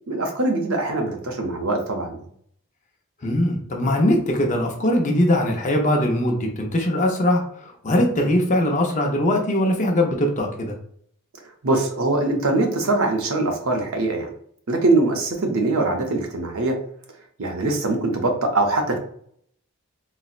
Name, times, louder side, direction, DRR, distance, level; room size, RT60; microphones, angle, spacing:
voice 1, 0.1-2.2 11.6-14.3 14.7-16.8 17.4-19.0, right 2 dB, 65° right, 3 dB, 0.6 m, -22 dB
voice 2, 3.2-10.8, left 1 dB, 35° left, 1 dB, 0.5 m, -21 dB
4.0 x 2.0 x 2.4 m, 0.64 s
head